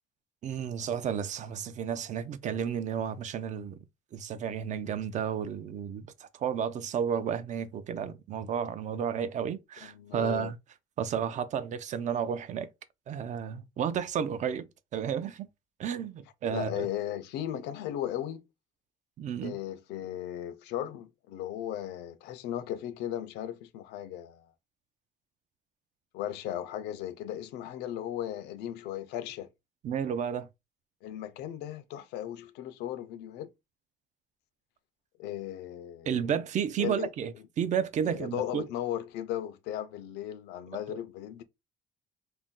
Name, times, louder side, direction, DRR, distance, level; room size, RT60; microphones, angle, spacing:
voice 1, 0.4-3.8 4.1-10.6 11.0-12.7 13.1-14.7 14.9-15.5 15.8-16.9 19.2-19.6 29.8-30.5 36.1-38.7 40.9-41.0, right 8 dB, 45° right, 0.4 m, -32 dB
voice 2, 9.8-10.5 16.5-18.5 19.4-24.5 26.1-29.5 31.0-33.5 35.2-36.3 36.8-37.1 38.0-41.4, left 11 dB, 85° left, 0.5 m, -36 dB
2.6 x 2.1 x 3.6 m
cardioid pair, 110°, 17 cm